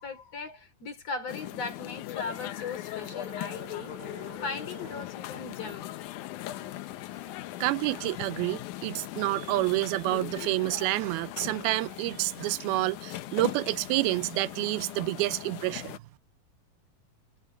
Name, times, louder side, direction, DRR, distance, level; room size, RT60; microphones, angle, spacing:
voice 1, 0.0-4.1 4.4-5.9, left 4 dB, 45° left, 4.3 m, -38 dB
sound 1, 1.3-16.0, left 16 dB, 75° left, 1.9 m, -40 dB
sound 2, 3.1-5.1, right 12 dB, 60° right, 3.0 m, -48 dB
voice 2, 7.6-16.0, right 19 dB, 90° right, 2.5 m, -29 dB
omnidirectional pair, 4.3 m